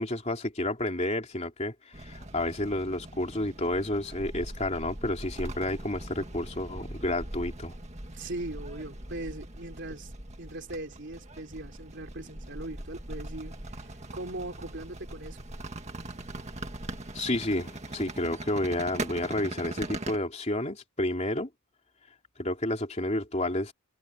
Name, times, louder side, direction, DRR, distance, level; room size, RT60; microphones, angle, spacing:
voice 1, 0.0-7.7 17.1-21.5 22.4-23.7, left 1 dB, 30° left, 3.3 m, -30 dB
sound 1, 1.9-20.2, right 1 dB, 30° right, 1.9 m, -41 dB
voice 2, 8.1-10.1 10.4-15.5, right 2 dB, 50° right, 3.5 m, -40 dB
head